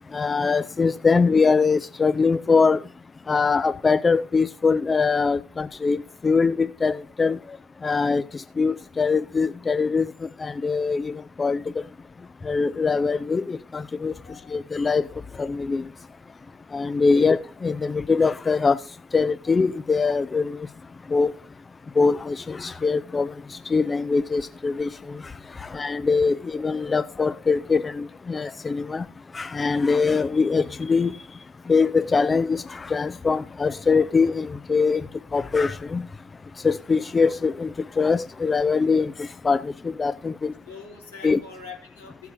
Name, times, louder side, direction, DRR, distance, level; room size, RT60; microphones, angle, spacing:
voice 1, 0.1-2.8 3.3-7.6 7.8-11.6 12.4-14.1 14.5-15.1 15.4-15.9 16.7-18.8 19.1-20.7 21.1-21.3 22.0-29.1 29.3-31.2 31.7-35.1 35.3-36.1 36.6-40.5 41.2-41.4, left 4 dB, 25° left, 0.4 m, -23 dB
voice 2, 14.2-14.7 17.2-17.4 19.4-19.5 40.7-42.3, left 5 dB, 80° left, 2.7 m, -44 dB
15.5 x 8.1 x 2.6 m
figure-of-eight pair, 55°, 0 cm